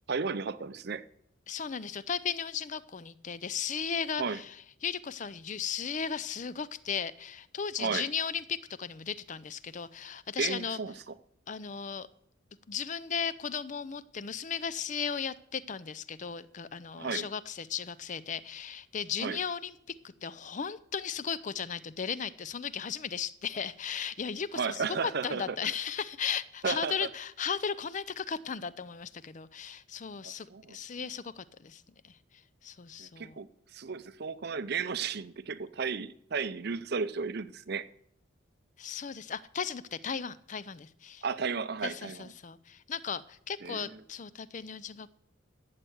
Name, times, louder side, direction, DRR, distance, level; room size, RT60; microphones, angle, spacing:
voice 1, 0.1-1.0 4.2-4.4 7.8-8.1 10.4-11.1 17.0-17.3 19.2-19.4 24.5-25.6 26.6-27.1 30.2-30.8 33.0-37.9 41.2-42.3 43.6-44.0, right 5 dB, 50° right, 0.6 m, -34 dB
voice 2, 1.5-10.8 11.5-12.1 12.7-32.2 32.6-33.4 38.8-41.2 41.8-45.1, left 7 dB, 35° left, 0.5 m, -36 dB
13.0 x 7.7 x 7.9 m
head